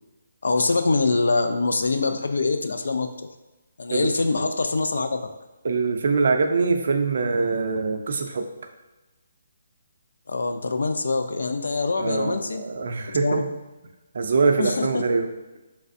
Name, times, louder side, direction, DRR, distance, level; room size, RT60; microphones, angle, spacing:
voice 1, 0.4-3.3 3.8-5.3 10.3-12.6 13.2-13.4 14.6-15.0, left 3 dB, 80° left, 7 dB, 0.3 m, -24 dB
voice 2, 5.6-8.5 12.0-13.5 14.1-15.3, right 4 dB, 60° right, 5 dB, 0.4 m, -23 dB
3.2 x 3.2 x 2.6 m, 1.1 s
hypercardioid pair, 155°, 0 cm